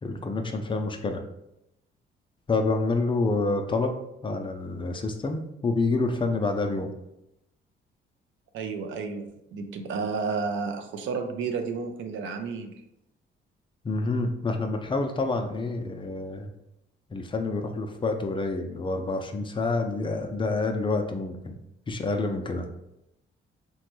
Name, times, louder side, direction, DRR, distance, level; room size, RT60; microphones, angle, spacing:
voice 1, 0.0-1.2 2.5-4.0 4.2-6.9 13.8-16.5 17.1-21.6 21.9-22.7, left 3 dB, 25° left, 4 dB, 0.4 m, -28 dB
voice 2, 8.5-12.8, right 5 dB, 75° right, 6 dB, 0.5 m, -31 dB
3.0 x 2.2 x 3.0 m, 0.85 s
cardioid pair, 90°, 20 cm